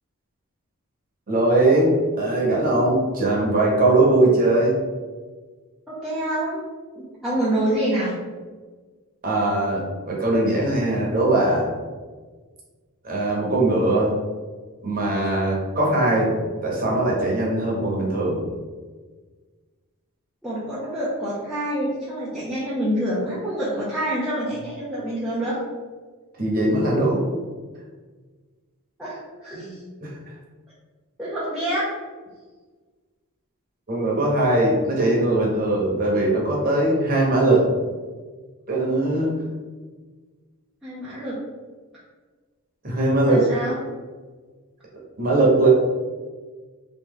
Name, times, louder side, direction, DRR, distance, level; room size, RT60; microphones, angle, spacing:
voice 1, 1.3-4.8 9.2-11.7 13.0-14.1 14.8-16.3 16.6-18.4 26.4-27.3 29.5-29.7 30.0-30.1 33.9-37.7 38.7-39.4 42.8-43.4 45.2-45.7, right 2 dB, 40° right, -3 dB, 1.0 m, -20 dB
voice 2, 5.9-6.6 6.9-8.2 20.4-25.6 29.0-29.8 31.2-31.9 40.8-41.4 43.3-43.7, right 1 dB, ahead, -10 dB, 0.7 m, -27 dB
3.1 x 2.9 x 3.7 m, 1.4 s
head